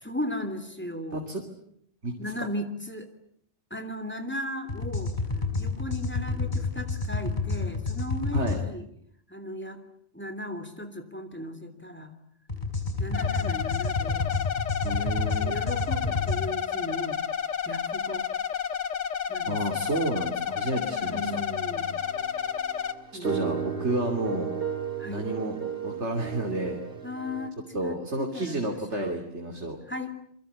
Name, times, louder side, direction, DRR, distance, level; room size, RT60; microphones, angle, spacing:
voice 1, 0.0-1.3 2.2-3.1 3.7-5.1 5.6-8.8 9.3-9.8 10.1-12.1 13.0-14.3 15.0-15.1 15.4-17.2 17.6-18.3 19.3-19.9 20.7-21.9 23.1-23.5 25.0-25.2 27.0-27.6 27.8-29.2 29.9-30.2, left 1 dB, 10° left, 8 dB, 3.2 m, -36 dB
voice 2, 1.1-1.4 2.0-2.1 8.3-8.6 14.8-15.6 19.5-21.4 23.2-24.5 25.1-25.6 25.8-26.8 27.7-29.8, right 2 dB, 70° right, 3 dB, 3.3 m, -30 dB
sound 1, 4.7-8.6 12.5-16.4, left 3 dB, 40° left, 4.6 m, -29 dB
sound 2, 13.1-22.9, left 8 dB, 80° left, 1.7 m, -31 dB
sound 3, 21.0-27.5, right 7 dB, 55° right, 2.8 m, -35 dB
28.5 x 23.5 x 8.6 m, 0.68 s
omnidirectional pair, 1.2 m